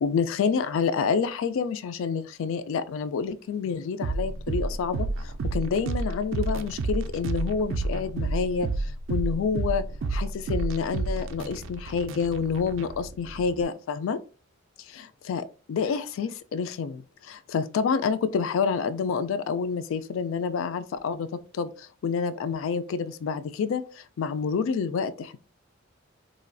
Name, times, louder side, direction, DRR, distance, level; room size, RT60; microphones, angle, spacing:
voice 1, 0.0-9.8 10.1-14.2 15.3-15.4 15.7-21.3 21.5-25.4, left 6 dB, 70° left, 0.3 m, -28 dB
sound 1, 4.0-13.6, right 3 dB, 65° right, 0.3 m, -30 dB
3.0 x 2.5 x 2.3 m
head